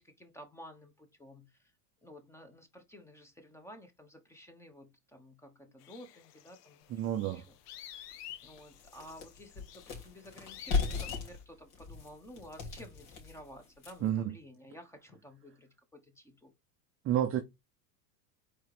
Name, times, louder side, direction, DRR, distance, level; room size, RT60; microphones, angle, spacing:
voice 1, 0.0-1.7 2.0-6.9 7.2-16.5, left 1 dB, 5° left, 1.2 m, -53 dB
sound 1, 5.8-11.4, left 12 dB, 80° left, 1.0 m, -50 dB
voice 2, 6.9-7.4 14.0-14.3 17.0-17.4, right 11 dB, 30° right, 0.6 m, -30 dB
sound 2, 7.1-7.2 7.7-7.8 8.1-14.2, left 4 dB, 50° left, 3.1 m, -37 dB
4.5 x 4.5 x 5.0 m
supercardioid pair, 145°, 47 cm